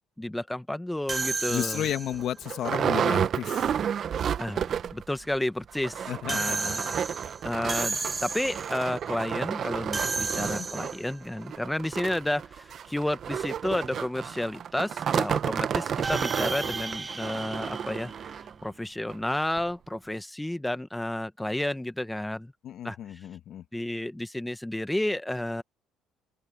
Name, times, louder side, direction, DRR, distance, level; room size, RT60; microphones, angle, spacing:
voice 1, 0.2-1.9 4.4-4.6 4.9-7.0 7.4-22.5 22.8-23.2 23.7-25.6, left 1 dB, 5° left, 1.1 m, -31 dB
sound 1, 1.1-2.4 6.3-8.8 9.9-11.2 16.0-18.6, right 4 dB, 20° right, 0.6 m, -33 dB
sound 2, 1.2-1.3 1.8-1.9 2.1-5.1 5.3-5.4 5.7-18.5 19.1-19.2 19.6-19.7, right 8 dB, 45° right, 0.9 m, -31 dB
voice 2, 1.5-3.7 6.1-6.7 10.4-10.9 22.6-23.6, left 11 dB, 55° left, 1.6 m, -33 dB
open air
cardioid pair, 115°, 0 cm